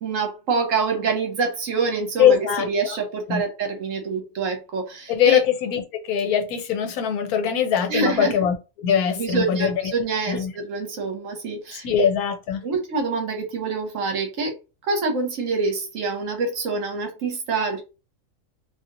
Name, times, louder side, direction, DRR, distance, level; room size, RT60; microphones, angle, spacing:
voice 1, 0.0-5.4 7.9-8.4 9.2-11.9 12.6-14.5 14.8-17.8, right 4 dB, 65° right, 1.1 m, -26 dB
voice 2, 2.2-3.0 3.3-3.4 5.1-9.8 10.3-10.5 11.7-12.6, left 8 dB, 80° left, 1.1 m, -22 dB
2.7 x 2.7 x 2.5 m
omnidirectional pair, 1.6 m